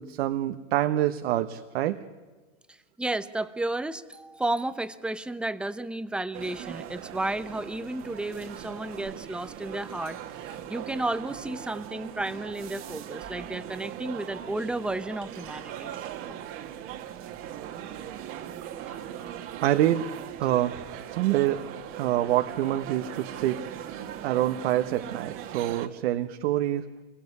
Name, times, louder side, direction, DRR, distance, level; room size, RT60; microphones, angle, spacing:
voice 1, 0.0-2.0 19.6-20.1 20.4-20.8 21.1-21.6 22.0-23.6 24.2-26.8, right 13 dB, 60° right, 8 dB, 1.2 m, -26 dB
voice 2, 2.7-15.9 16.3-16.4 18.9-19.0, right 2 dB, 5° right, 13 dB, 0.7 m, -33 dB
sound 1, 6.3-25.9, right 10 dB, 35° right, 1.7 m, -40 dB
26.5 x 22.0 x 9.6 m, 1.3 s
hypercardioid pair, 135°, 37 cm